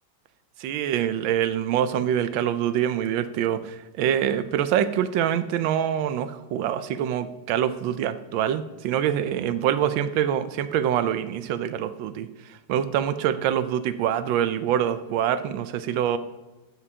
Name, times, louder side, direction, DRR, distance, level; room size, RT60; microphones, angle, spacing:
voice 1, 0.6-16.2, right 10 dB, 85° right, 11 dB, 1.3 m, -25 dB
9.6 x 7.4 x 2.8 m, 1.1 s
omnidirectional pair, 2.1 m